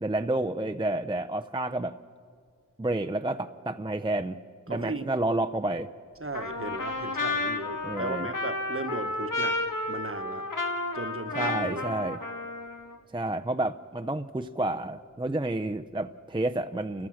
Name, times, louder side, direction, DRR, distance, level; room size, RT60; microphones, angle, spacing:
voice 1, 0.0-2.0 2.8-4.4 4.7-5.9 7.8-8.3 11.4-12.2 13.1-17.1, right 1 dB, 15° right, 7 dB, 0.5 m, -30 dB
voice 2, 4.7-5.1 6.2-9.6 9.9-10.5 10.9-11.9, right 2 dB, 40° right, 10 dB, 1.1 m, -36 dB
Trumpet, 6.3-13.0, left 2 dB, 75° left, 1.7 m, -32 dB
29.0 x 14.5 x 6.4 m, 2.2 s
wide cardioid pair, 45°, 33 cm